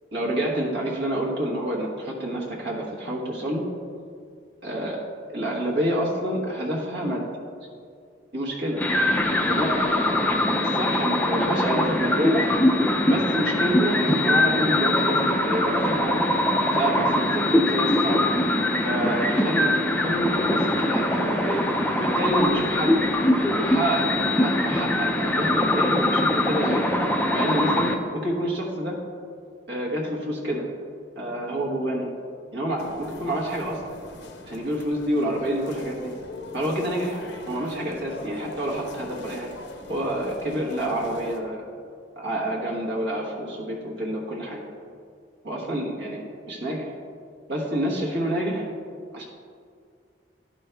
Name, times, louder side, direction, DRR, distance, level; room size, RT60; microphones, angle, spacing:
voice 1, 0.1-3.6 4.6-5.0 5.3-7.2 8.3-8.8 9.4-12.5 13.1-16.3 16.7-18.2 18.8-21.6 22.0-23.0 23.3-26.8 27.3-27.9 28.2-28.9 29.7-30.6 31.2-32.1 32.5-33.8 34.5-36.1 36.5-37.2 37.5-39.5 39.9-41.6 42.2-44.6 45.4-46.9 47.5-48.7 49.1-49.2, right 1 dB, 70° right, -3 dB, 1.2 m, -28 dB
sound 1, 8.8-27.9, left 1 dB, 10° left, 0.4 m, -22 dB
sound 2, 32.8-41.4, left 2 dB, 75° left, 0.8 m, -41 dB
11.5 x 5.3 x 3.4 m, 2.2 s
head